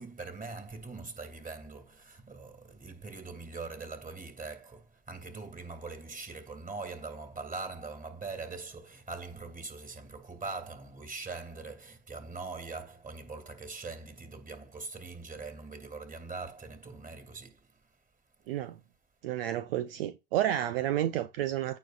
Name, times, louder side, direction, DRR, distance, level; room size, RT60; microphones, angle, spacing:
voice 1, 0.0-17.8, right 3 dB, 25° right, 2.6 m, -42 dB
voice 2, 18.5-18.8 19.2-21.8, right 12 dB, 70° right, 0.5 m, -30 dB
15.5 x 5.2 x 2.5 m
figure-of-eight pair, 55°, 30 cm